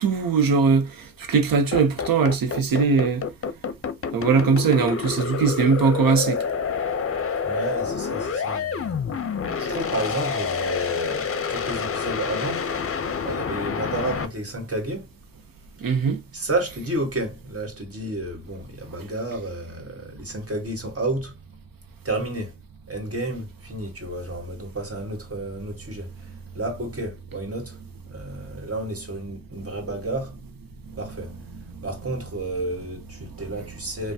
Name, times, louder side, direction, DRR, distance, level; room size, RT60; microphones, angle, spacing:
voice 1, 0.0-3.2 4.1-6.4 15.8-16.2 31.7-31.8, right 5 dB, 80° right, 0.8 m, -20 dB
sound 1, 1.7-14.3, left 6 dB, 40° left, 0.6 m, -28 dB
voice 2, 7.4-9.0 9.6-12.7 13.2-15.1 16.3-21.4 22.0-22.6 22.9-27.8 28.1-30.4 31.0-31.3 31.8-34.1, right 2 dB, 45° right, 1.6 m, -31 dB
3.2 x 2.2 x 2.7 m
cardioid pair, 50°, 34 cm